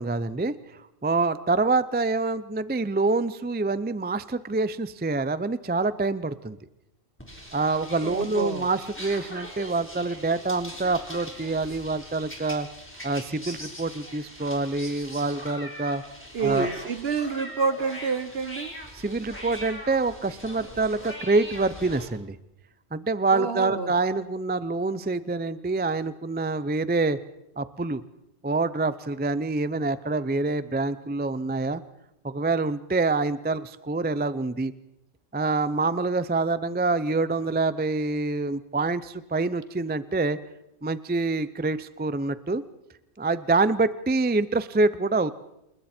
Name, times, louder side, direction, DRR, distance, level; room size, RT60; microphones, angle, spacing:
voice 1, 0.0-6.6 7.5-12.7 13.0-16.0 16.4-16.7 18.9-22.4 22.9-27.2 27.6-28.0 28.4-31.8 32.2-34.7 35.3-40.4 40.8-42.6 43.2-45.4, right 3 dB, 15° right, 15 dB, 0.3 m, -26 dB
sound 1, 7.2-22.1, equal, 10° left, 3.9 m, -41 dB
voice 2, 8.0-8.7 16.3-18.7 23.3-23.9, right 5 dB, 55° right, 12 dB, 1.4 m, -28 dB
29.0 x 20.5 x 4.4 m, 0.87 s
omnidirectional pair, 1.3 m